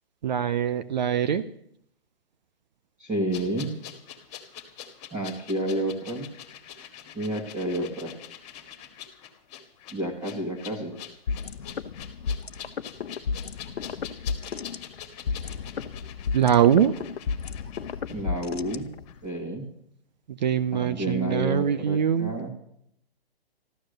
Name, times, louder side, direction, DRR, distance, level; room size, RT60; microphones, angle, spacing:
voice 1, 0.2-1.4 16.3-16.9 20.3-22.3, right 9 dB, 45° right, 11 dB, 0.8 m, -23 dB
voice 2, 3.0-3.7 5.1-6.3 7.1-8.1 9.9-10.9 18.1-18.9 19.2-19.7 20.7-22.5, right 1 dB, 10° right, -3 dB, 1.7 m, -30 dB
sound 1, 3.3-18.8 19.1-19.2, left 9 dB, 30° left, 1.9 m, -45 dB
sound 2, 11.3-19.2, left 5 dB, 75° left, 1.0 m, -33 dB
13.5 x 13.0 x 6.6 m, 0.72 s
hypercardioid pair, 155°, 31 cm